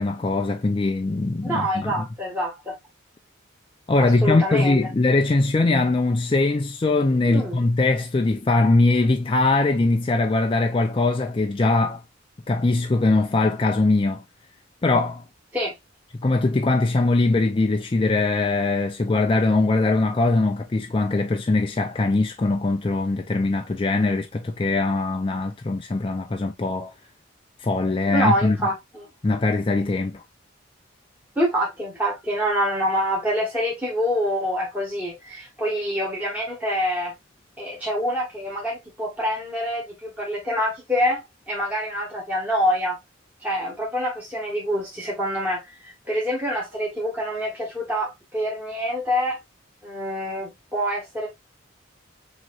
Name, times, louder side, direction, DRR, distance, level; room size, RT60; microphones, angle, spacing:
voice 1, 0.0-2.0 3.9-12.0 12.5-14.2 14.8-15.2 16.2-26.9 27.6-28.6 29.2-30.2, left 2 dB, 25° left, 0.4 m, -21 dB
voice 2, 1.4-2.7 4.0-4.8 7.3-7.6 15.5-15.8 28.1-29.1 31.4-37.1 37.6-43.0 43.4-49.4 49.8-51.3, equal, 10° right, 1.6 m, -26 dB
6.0 x 2.9 x 2.4 m
head